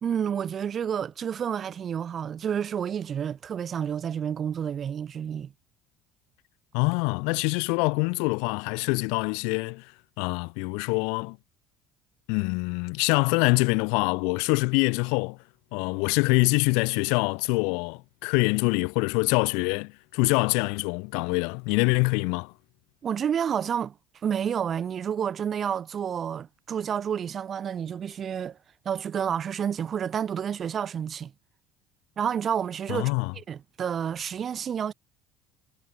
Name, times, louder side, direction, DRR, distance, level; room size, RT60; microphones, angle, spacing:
voice 1, 0.0-5.5 23.0-23.9 24.2-28.6 28.9-31.3 32.2-34.9, right 8 dB, 35° right, 1.9 m, -30 dB
voice 2, 6.7-9.9 10.2-11.4 12.3-15.4 15.7-22.5 32.9-33.3, left 35 dB, 60° left, 1.6 m, -25 dB
figure-of-eight pair, 60°, 0 cm